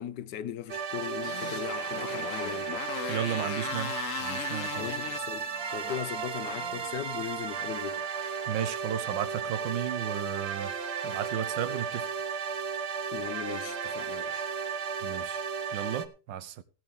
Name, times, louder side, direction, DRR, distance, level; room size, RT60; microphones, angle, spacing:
voice 1, 0.0-2.8 4.8-8.1 13.1-14.5, left 11 dB, 75° left, 1.3 m, -38 dB
sound 1, 0.7-16.1, right 6 dB, 50° right, 0.9 m, -34 dB
Motorcycle, 0.9-7.5, left 10 dB, 60° left, 1.0 m, -39 dB
voice 2, 3.1-4.8 8.2-10.7 11.0-12.1 15.0-15.4 15.7-16.6, right 10 dB, 85° right, 1.5 m, -34 dB
18.5 x 8.8 x 3.7 m
omnidirectional pair, 1.9 m